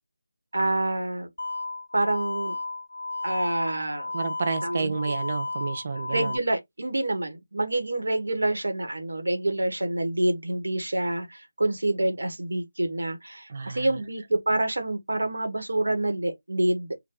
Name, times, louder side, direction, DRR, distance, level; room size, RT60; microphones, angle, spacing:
voice 1, 0.5-1.3 1.9-2.6 3.2-4.1 4.6-4.9 6.1-16.9, right 1 dB, 90° right, 1.1 m, -27 dB
sound 1, 1.4-6.4, left 2 dB, 75° left, 0.6 m, -33 dB
voice 2, 4.1-6.4 13.5-14.0, right 4 dB, 30° right, 0.4 m, -30 dB
3.0 x 2.2 x 3.7 m
figure-of-eight pair, 175°, 0 cm